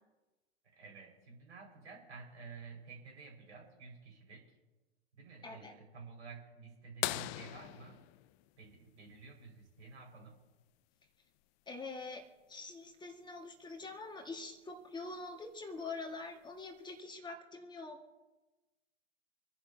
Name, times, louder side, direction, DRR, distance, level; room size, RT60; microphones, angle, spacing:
voice 1, 0.6-4.4 5.2-8.0 8.6-10.4, right 4 dB, 80° right, -1 dB, 5.1 m, -52 dB
voice 2, 5.4-5.7 11.7-18.0, left 3 dB, 15° left, 4 dB, 1.7 m, -45 dB
sound 1, 7.0-9.5 11.4-11.5 13.7-13.8 15.5-15.8 16.6-16.7, left 17 dB, 30° left, 0.4 m, -40 dB
26.5 x 11.0 x 2.7 m, 1.1 s
hypercardioid pair, 105°, 33 cm